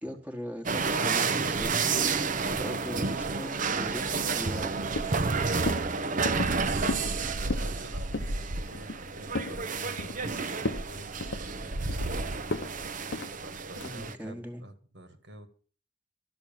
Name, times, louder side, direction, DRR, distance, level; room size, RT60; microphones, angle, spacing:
voice 1, 0.0-1.7 2.5-5.0 13.8-14.6, equal, 10° right, 1.4 m, -40 dB
sound 1, 0.7-14.1, right 4 dB, 45° right, 0.8 m, -30 dB
sound 2, 4.0-4.7 5.0-5.3 5.7-5.9 6.3-6.6 6.9-7.1 7.4-7.7 8.1-8.4 8.7-9.6 10.0-10.3 10.6-10.9 11.2-12.1 12.5-12.7 13.1-13.3 13.8-14.1, left 2 dB, 80° left, 0.9 m, -34 dB
voice 2, 6.9-8.1 8.5-10.5 10.8-11.6 13.4-15.5, right 1 dB, 70° right, 1.9 m, -48 dB
13.0 x 6.2 x 8.9 m
head